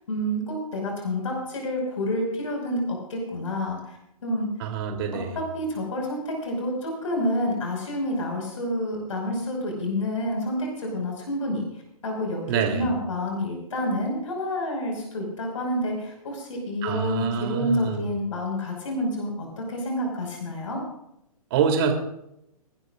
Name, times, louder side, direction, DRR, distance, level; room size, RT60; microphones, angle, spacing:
voice 1, 0.1-4.5 5.3-11.6 12.0-20.8, left 1 dB, 55° left, 1 dB, 5.6 m, -28 dB
voice 2, 4.6-5.4 12.5-12.9 16.8-18.0 21.5-21.9, right 6 dB, 40° right, 3 dB, 3.3 m, -26 dB
29.5 x 12.0 x 2.6 m, 0.79 s
figure-of-eight pair, 120°, 19 cm